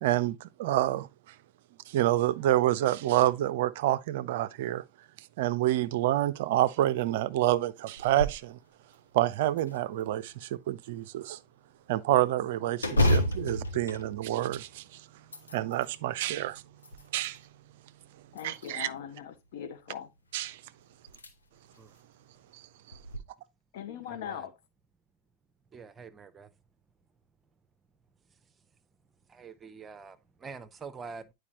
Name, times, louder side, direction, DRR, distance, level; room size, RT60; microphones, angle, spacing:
voice 1, 0.0-1.1 1.9-4.8 5.4-8.6 9.1-11.4 11.9-15.0 15.5-16.6 17.1-17.4 18.4-18.9 20.3-20.6 22.5-22.6, right 14 dB, 50° right, 0.4 m, -28 dB
sound 1, 8.0-8.5 8.9-9.0 9.6-10.4 12.8-14.8 15.2-15.9 16.6-17.4 18.3-19.0 20.4-20.5 21.1-21.3 21.8-21.9 22.9-23.2, left 1 dB, 75° left, 1.0 m, -30 dB
voice 2, 18.3-20.1 23.7-24.5, left 9 dB, 55° left, 0.9 m, -40 dB
voice 3, 24.1-24.5 25.7-26.5 29.3-31.3, right 5 dB, 20° right, 0.7 m, -45 dB
9.6 x 4.8 x 3.0 m
figure-of-eight pair, 90°, 0 cm